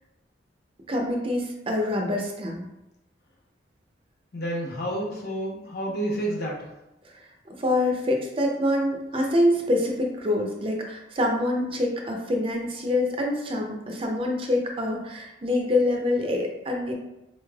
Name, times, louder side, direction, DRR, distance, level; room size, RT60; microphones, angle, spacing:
voice 1, 0.9-2.7 7.0-7.1 7.6-16.9, left 1 dB, 30° right, 1 dB, 0.4 m, -25 dB
voice 2, 4.3-6.7, right 1 dB, 55° left, -3 dB, 0.9 m, -30 dB
4.2 x 3.1 x 2.3 m, 0.90 s
head